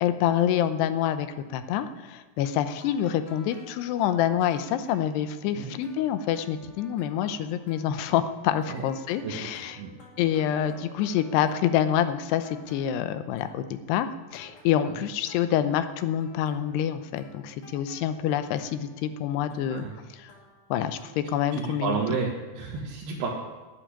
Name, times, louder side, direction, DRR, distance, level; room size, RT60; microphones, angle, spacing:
voice 1, 0.0-1.3 1.5-1.9 2.4-9.8 10.2-12.4 12.7-13.6 13.9-14.1 14.3-17.4 17.7-18.9 19.2-19.8 20.7-21.0 21.3-22.0, left 10 dB, 85° left, 11 dB, 2.9 m, -26 dB
sound 1, 2.8-12.1 12.4-13.9 14.3-15.6 16.2-21.1, left 1 dB, 40° left, 2.5 m, -53 dB
voice 2, 9.2-9.9 14.8-14.9 19.7-19.9 21.6-23.3, right 5 dB, 75° right, -3 dB, 3.4 m, -31 dB
11.0 x 8.5 x 10.0 m, 1.3 s
omnidirectional pair, 4.7 m